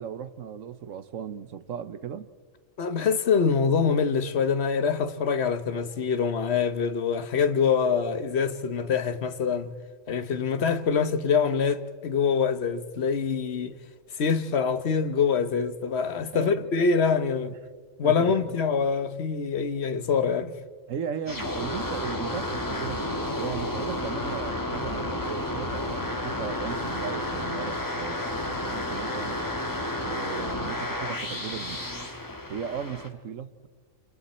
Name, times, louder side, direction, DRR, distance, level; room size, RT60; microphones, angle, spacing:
voice 1, 0.0-2.3 16.3-16.6 17.4-17.6 18.0-18.3 20.9-29.4 30.0-31.9 32.5-33.7, right 8 dB, 75° right, 1.3 m, -36 dB
voice 2, 2.8-9.7 10.1-13.7 14.1-17.6 18.0-20.5, left 6 dB, 55° left, 1.3 m, -25 dB
sound 1, 21.3-33.1, left 1 dB, 15° left, 1.7 m, -31 dB
30.0 x 28.0 x 4.3 m
omnidirectional pair, 1.4 m